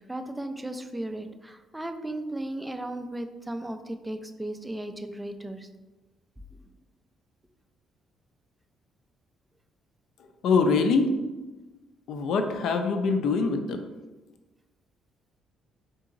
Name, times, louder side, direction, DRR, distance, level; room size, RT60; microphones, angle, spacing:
voice 1, 0.1-5.7, right 1 dB, 5° right, 7 dB, 0.3 m, -35 dB
voice 2, 10.4-11.1 12.1-13.8, left 4 dB, 70° left, 6 dB, 0.4 m, -24 dB
3.8 x 3.7 x 2.5 m, 1.2 s
cardioid pair, 125°, 0 cm